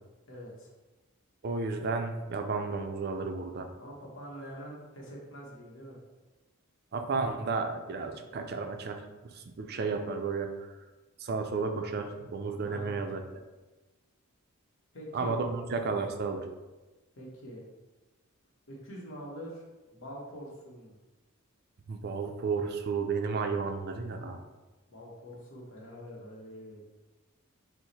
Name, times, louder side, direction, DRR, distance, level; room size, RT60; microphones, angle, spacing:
voice 1, 0.3-0.7 3.8-6.0 12.6-13.0 14.9-15.4 17.2-17.6 18.7-19.6 19.9-20.9 24.9-26.8, equal, 60° left, -2 dB, 1.0 m, -44 dB
voice 2, 1.4-3.7 6.9-10.7 11.2-13.2 15.1-16.5 21.9-24.4, right 4 dB, 45° right, 5 dB, 0.4 m, -33 dB
4.6 x 2.1 x 4.0 m, 1.2 s
head